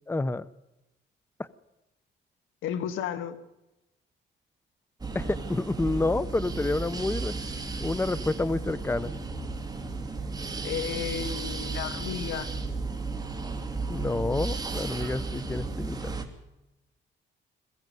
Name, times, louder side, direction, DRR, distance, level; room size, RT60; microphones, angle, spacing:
voice 1, 0.1-0.5 5.1-7.3 7.8-9.1 13.9-16.1, left 2 dB, 10° left, 19 dB, 0.7 m, -29 dB
voice 2, 2.6-3.4 10.6-12.6, left 9 dB, 85° left, 12 dB, 1.5 m, -33 dB
sound 1, 5.0-16.2, right 3 dB, 20° right, 2.8 m, -34 dB
21.5 x 15.0 x 9.3 m, 0.97 s
cardioid pair, 90°, 20 cm